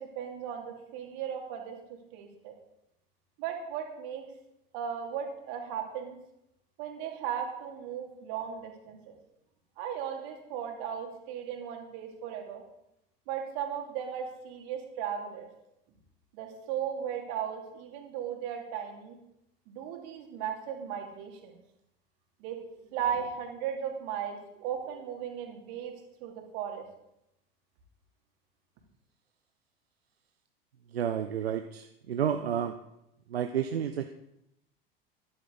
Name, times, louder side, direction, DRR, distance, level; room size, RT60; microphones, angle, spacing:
voice 1, 0.0-1.8 2.1-2.6 3.4-4.2 4.7-6.2 6.8-9.2 9.8-12.6 13.3-15.5 16.3-19.2 19.7-21.5 22.4-22.6 22.9-25.9 26.2-26.8, right 8 dB, 55° right, 2 dB, 2.8 m, -36 dB
voice 2, 30.9-32.8 33.3-34.1, right 9 dB, 80° right, 7 dB, 0.7 m, -31 dB
13.0 x 11.0 x 4.0 m, 0.83 s
figure-of-eight pair, 80°, 30 cm